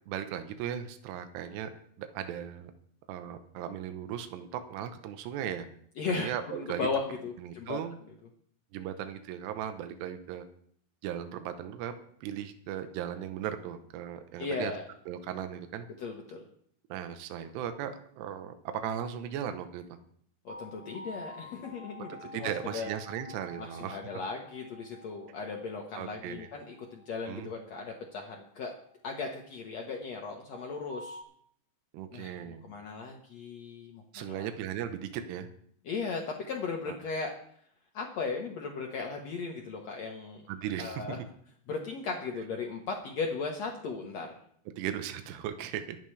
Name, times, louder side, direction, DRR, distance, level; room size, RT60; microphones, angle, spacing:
voice 1, 0.1-1.7 2.0-2.7 3.1-5.7 6.1-6.9 7.4-8.0 8.7-10.4 11.0-14.7 15.1-15.9 16.9-20.0 22.1-24.0 26.0-26.5 27.3-27.5 31.9-32.7 34.1-35.5 36.9-37.0 40.5-41.2 44.8-46.0, right 10 dB, 80° right, 8 dB, 3.0 m, -37 dB
voice 2, 6.0-7.8 14.4-14.8 16.0-16.5 20.4-22.9 23.6-28.7 29.0-31.2 32.1-34.5 35.8-37.3 37.9-40.4 40.8-41.2 41.7-44.3, left 4 dB, 85° left, 1 dB, 1.5 m, -37 dB
sound 1, 20.5-29.5 30.5-31.2, equal, 40° right, 1.2 m, -49 dB
22.5 x 9.2 x 3.3 m, 0.64 s
omnidirectional pair, 4.9 m